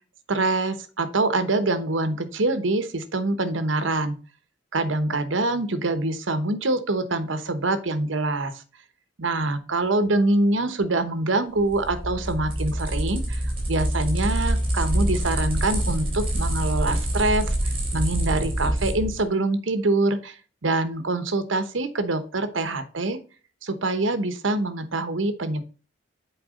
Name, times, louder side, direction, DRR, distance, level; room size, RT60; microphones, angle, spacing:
voice 1, 0.3-4.2 4.7-8.5 9.2-13.4 13.7-23.2 23.6-25.6, right 2 dB, 85° right, 10 dB, 1.0 m, -25 dB
sound 1, 11.6-19.2, right 1 dB, 30° right, 3.0 m, -26 dB
8.0 x 4.8 x 3.7 m, 0.37 s
head